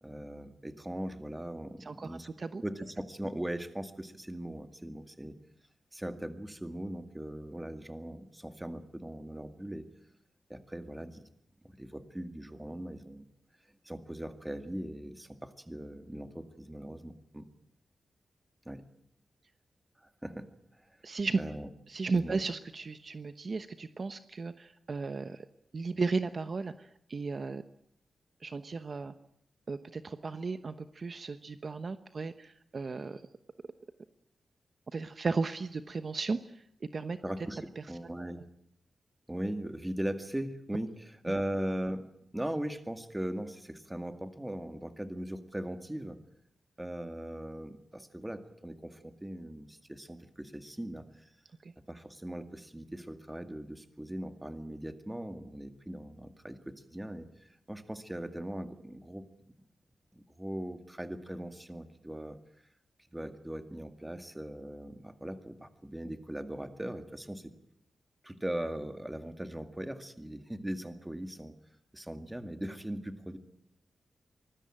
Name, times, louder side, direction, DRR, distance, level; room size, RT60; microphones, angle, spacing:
voice 1, 0.0-2.3 2.6-5.3 5.9-9.9 10.5-11.2 11.6-13.3 13.9-17.5 18.7-18.8 20.0-20.5 20.7-21.0 21.4-21.7 22.1-22.4 37.2-38.4 39.3-46.2 46.8-51.3 51.9-57.3 57.7-59.2 60.1-62.4 63.1-67.5 68.2-71.5 71.9-73.4, right 1 dB, 10° right, 8 dB, 2.0 m, -39 dB
voice 2, 1.8-2.6 21.0-21.4 21.9-25.5 25.7-27.6 28.4-29.1 29.7-33.2 34.9-36.6 36.9-37.2 37.8-37.9 38.2-38.3 51.6-51.7, right 4 dB, 40° right, 10 dB, 1.0 m, -35 dB
25.0 x 20.0 x 8.9 m, 0.74 s
wide cardioid pair, 135°, 0 cm